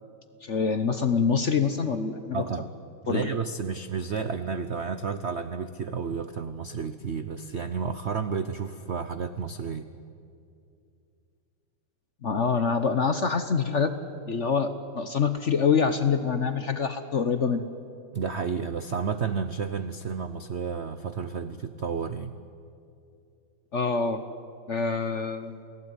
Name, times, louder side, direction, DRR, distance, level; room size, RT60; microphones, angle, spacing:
voice 1, 0.4-2.4 3.1-3.3 12.2-14.0 14.3-17.7 23.7-24.2 24.7-25.6, left 5 dB, 50° left, 10 dB, 1.0 m, -25 dB
voice 2, 2.3-2.7 3.0-9.9 18.1-22.3, right 5 dB, 70° right, 11 dB, 0.6 m, -31 dB
29.0 x 18.0 x 9.7 m, 2.5 s
omnidirectional pair, 2.2 m